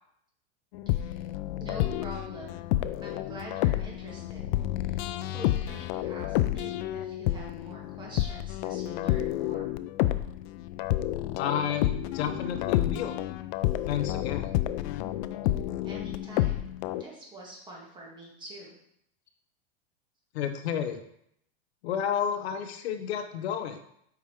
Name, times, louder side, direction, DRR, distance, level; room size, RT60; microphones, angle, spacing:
sound 1, 0.7-17.0, left 14 dB, 45° left, 0.4 m, -30 dB
voice 1, 0.9-1.2 1.6-2.7 3.0-4.5 4.8-9.7 15.8-16.7 17.0-18.8, right 1 dB, 15° right, -3 dB, 2.2 m, -45 dB
voice 2, 11.4-13.2 13.9-14.5 20.3-21.0 21.8-23.8, left 8 dB, 75° left, 8 dB, 0.9 m, -31 dB
8.2 x 5.5 x 3.5 m, 0.72 s
supercardioid pair, 145°, 32 cm